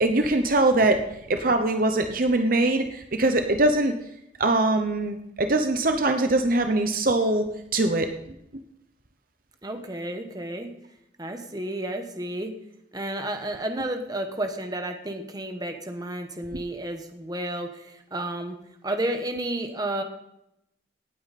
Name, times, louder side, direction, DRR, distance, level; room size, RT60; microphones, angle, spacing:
voice 1, 0.0-1.0 1.3-3.9 4.4-7.5 7.7-8.1, right 2 dB, 45° right, 6 dB, 0.8 m, -22 dB
voice 2, 9.6-10.7 11.2-12.5 12.9-18.6 18.8-20.0, right 1 dB, 20° right, 6 dB, 1.1 m, -31 dB
18.0 x 8.7 x 4.2 m, 0.81 s
head